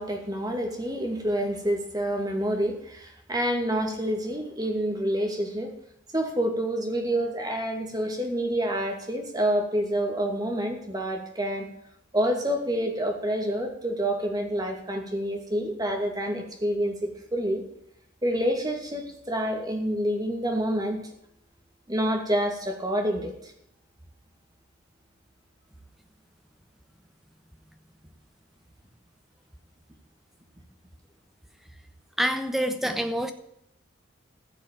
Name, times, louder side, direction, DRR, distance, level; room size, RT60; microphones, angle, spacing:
voice 1, 0.0-5.7 6.1-11.7 12.1-17.6 18.2-21.0 21.9-23.5, equal, 20° right, 3 dB, 2.4 m, -28 dB
voice 2, 32.2-33.3, equal, ahead, 8 dB, 1.1 m, -26 dB
15.5 x 6.2 x 8.9 m, 0.76 s
head